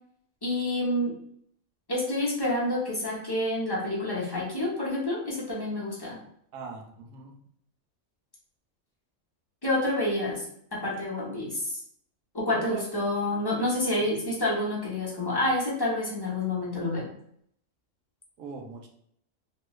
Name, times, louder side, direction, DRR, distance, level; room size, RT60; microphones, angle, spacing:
voice 1, 0.4-1.1 1.9-6.2 9.6-10.4 10.7-11.8 12.3-17.1, left 1 dB, 20° left, -5 dB, 0.7 m, -28 dB
voice 2, 6.5-7.3 12.5-12.8 18.4-18.9, right 4 dB, 85° right, 1 dB, 1.1 m, -40 dB
3.1 x 2.2 x 3.0 m, 0.68 s
omnidirectional pair, 1.4 m